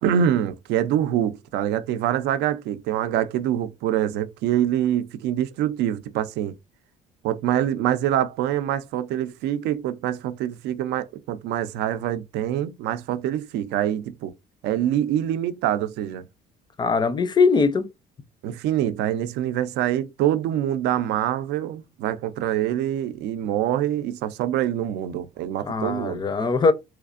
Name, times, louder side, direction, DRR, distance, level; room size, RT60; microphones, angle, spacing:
voice 1, 0.0-6.6 7.2-14.3 14.6-16.3 18.4-26.2, right 11 dB, 85° right, 0.4 m, -25 dB
voice 2, 16.8-17.9 25.6-26.7, left 4 dB, 25° left, 0.5 m, -21 dB
3.3 x 3.1 x 2.4 m
cardioid pair, 110°, 17 cm